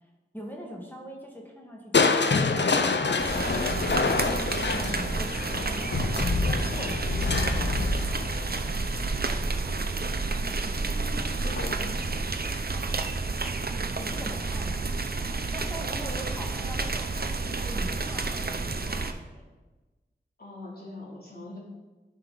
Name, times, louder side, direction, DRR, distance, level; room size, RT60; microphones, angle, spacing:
voice 1, 0.3-3.9 4.6-8.8 14.0-14.8 15.5-19.4, equal, 10° left, -2 dB, 1.7 m, -42 dB
Crushing, 1.9-9.9 11.4-12.0 12.4-12.5, left 4 dB, 70° left, 0.7 m, -27 dB
sound 1, 3.2-19.1, right 3 dB, 55° right, 0.7 m, -30 dB
voice 2, 10.0-11.9 20.4-21.6, left 2 dB, 55° left, -5 dB, 3.1 m, -43 dB
12.0 x 5.8 x 4.0 m, 1.2 s
wide cardioid pair, 45°, 19 cm